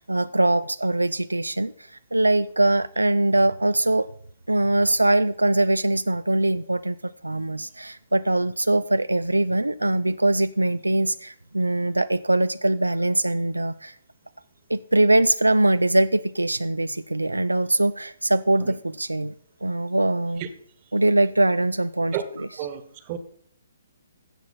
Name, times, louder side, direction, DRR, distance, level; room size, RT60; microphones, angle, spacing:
voice 1, 0.0-1.7 2.1-4.1 4.5-13.9 14.7-19.3 19.6-20.4 20.9-22.2, right 2 dB, 90° right, 14 dB, 0.3 m, -22 dB
voice 2, 22.1-23.2, right 9 dB, 35° right, 11 dB, 1.2 m, -32 dB
13.5 x 7.6 x 4.2 m, 0.62 s
figure-of-eight pair, 130°, 0 cm